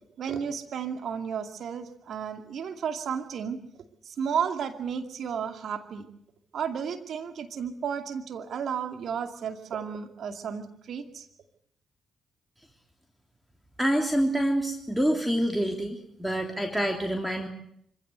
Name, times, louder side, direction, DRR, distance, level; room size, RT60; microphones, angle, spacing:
voice 1, 0.2-3.6 4.0-6.1 6.5-11.3, right 7 dB, 65° right, 6 dB, 2.4 m, -33 dB
voice 2, 13.8-17.5, right 1 dB, 5° right, 3 dB, 3.3 m, -26 dB
25.0 x 16.0 x 8.1 m, 0.71 s
hypercardioid pair, 45°, 0 cm